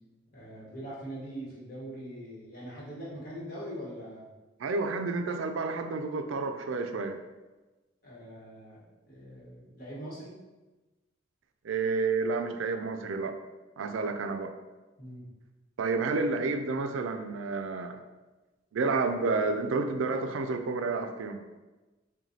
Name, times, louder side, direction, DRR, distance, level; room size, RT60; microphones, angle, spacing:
voice 1, 0.3-4.3 8.0-8.8 9.1-10.3 15.0-15.3, equal, 50° left, -6 dB, 1.2 m, -42 dB
voice 2, 4.6-7.2 11.6-13.4 13.8-14.5 15.8-18.0 18.7-21.4, right 3 dB, 90° right, 7 dB, 0.4 m, -30 dB
5.9 x 2.2 x 2.7 m, 1.2 s
head